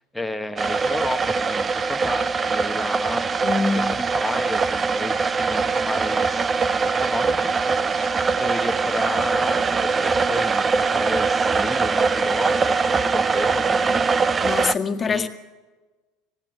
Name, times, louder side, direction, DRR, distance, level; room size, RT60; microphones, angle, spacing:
voice 1, 0.0-3.2 3.7-6.5 6.8-8.0 8.4-14.1 15.0-15.3, left 1 dB, 5° left, 7 dB, 1.3 m, -32 dB
sound 1, 0.6-14.7, right 4 dB, 25° right, 0.6 m, -22 dB
voice 2, 3.4-3.9 14.4-15.3, left 4 dB, 30° left, 5 dB, 1.8 m, -24 dB
19.5 x 15.0 x 9.0 m, 1.2 s
hypercardioid pair, 80°, 0 cm